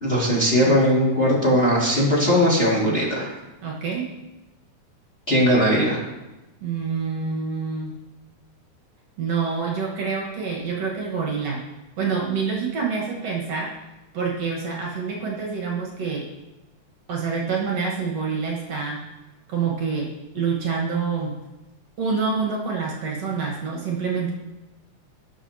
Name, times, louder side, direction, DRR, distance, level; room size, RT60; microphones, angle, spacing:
voice 1, 0.0-3.3 5.3-6.1, equal, 20° left, -5 dB, 2.0 m, -19 dB
voice 2, 3.6-4.1 6.6-7.9 9.2-11.7 12.0-13.7 14.1-16.3 17.1-19.0 19.5-21.4 22.0-24.3, right 5 dB, 60° right, -2 dB, 2.4 m, -27 dB
18.0 x 7.1 x 2.8 m, 1.0 s
omnidirectional pair, 3.5 m